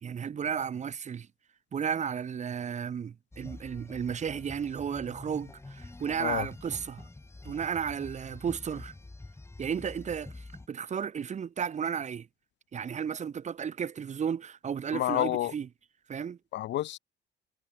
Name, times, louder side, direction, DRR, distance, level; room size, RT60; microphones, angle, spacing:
voice 1, 0.0-1.3 1.7-7.0 7.4-8.9 9.6-12.3 12.7-15.7 16.1-16.4, right 7 dB, 35° right, 0.6 m, -33 dB
sound 1, 3.3-10.7, left 2 dB, 15° left, 0.9 m, -47 dB
voice 2, 14.9-15.5 16.5-17.0, left 14 dB, 65° left, 0.4 m, -29 dB
cardioid pair, 90°, 20 cm